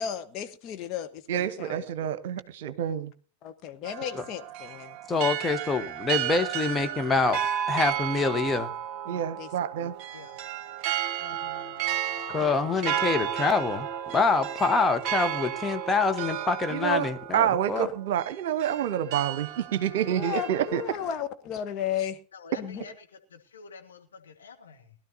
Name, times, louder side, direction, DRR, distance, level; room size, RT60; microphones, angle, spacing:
voice 1, 0.0-1.8 3.4-5.0 9.0-9.5 9.8-9.9 20.0-22.2 22.6-22.8, left 9 dB, 35° left, 1.3 m, -34 dB
voice 2, 1.3-3.1 9.1-9.9 16.7-17.1 17.3-20.8, right 10 dB, 55° right, 1.0 m, -28 dB
sound 1, 3.8-21.2, right 10 dB, 40° right, 1.5 m, -33 dB
voice 3, 5.1-7.4 7.7-8.7 12.3-13.9 14.1-17.9, left 4 dB, 15° left, 1.2 m, -26 dB
voice 4, 11.2-12.3 22.3-24.9, left 5 dB, 70° left, 1.8 m, -48 dB
21.0 x 12.0 x 2.8 m
figure-of-eight pair, 90°, 0 cm